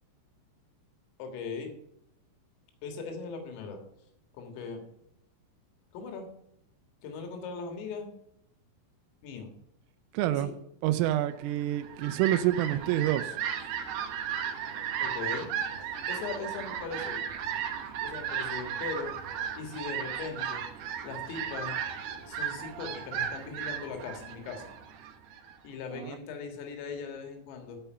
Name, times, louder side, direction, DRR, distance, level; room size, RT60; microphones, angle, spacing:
voice 1, 1.2-1.7 2.8-3.8 4.3-4.8 5.9-6.3 7.0-8.1 9.2-9.5 10.3-10.5 15.0-15.5 16.1-17.3 18.0-19.1 19.6-20.6 21.0-21.8 22.2-24.7 25.6-27.8, left 5 dB, 85° left, 4.4 m, -39 dB
voice 2, 10.1-10.5 10.8-13.4 25.9-26.2, right 13 dB, 90° right, 3.2 m, -27 dB
Fowl, 11.6-25.5, right 8 dB, 70° right, 2.6 m, -35 dB
14.0 x 5.6 x 5.5 m
omnidirectional pair, 5.8 m